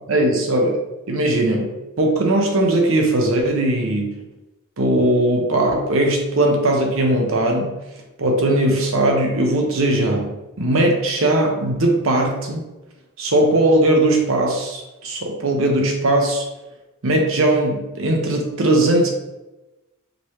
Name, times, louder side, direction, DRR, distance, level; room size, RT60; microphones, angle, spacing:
voice 1, 0.1-0.8 1.1-4.2 4.8-7.8 8.2-12.7 13.2-16.4 17.0-19.1, right 1 dB, 65° right, 2 dB, 0.8 m, -19 dB
5.2 x 3.0 x 3.0 m, 1.0 s
head